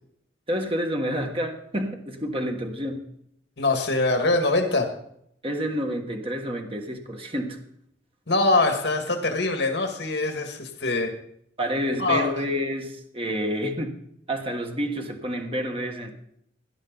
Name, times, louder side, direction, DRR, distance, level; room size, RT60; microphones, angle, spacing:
voice 1, 0.5-3.0 5.4-7.6 11.6-13.9 14.3-16.1, equal, 30° right, 1.4 m, -29 dB
voice 2, 3.6-4.9 8.3-11.1 12.0-12.4, left 2 dB, 65° left, 1.9 m, -23 dB
17.5 x 11.0 x 4.0 m
head